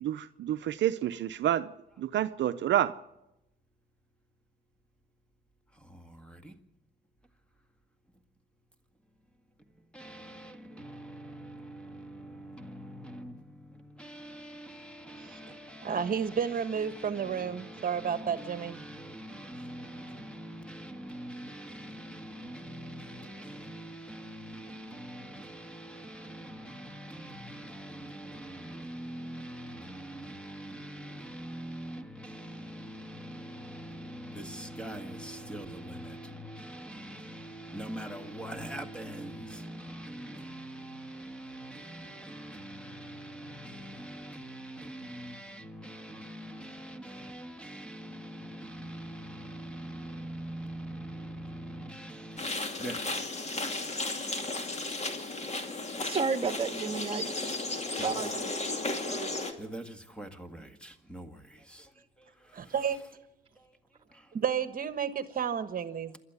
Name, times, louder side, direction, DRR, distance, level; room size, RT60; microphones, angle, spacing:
voice 1, 0.0-1.7 2.0-3.0, right 11 dB, 65° right, 0.7 m, -29 dB
voice 2, 5.7-6.6 9.6-52.4 52.8-53.1 58.0-58.3 58.8-59.2 59.6-61.9 62.7-62.8 63.6-63.8 64.1-64.4, right 1 dB, 5° left, 1.9 m, -43 dB
voice 3, 15.8-18.8 62.6-63.0 64.3-66.2, right 7 dB, 45° right, 1.4 m, -31 dB
sound 1, 52.4-59.5, left 2 dB, 35° left, 2.5 m, -34 dB
voice 4, 56.0-57.4 58.0-59.6, right 5 dB, 30° right, 1.8 m, -33 dB
27.5 x 12.0 x 8.2 m
cardioid pair, 90°, 20 cm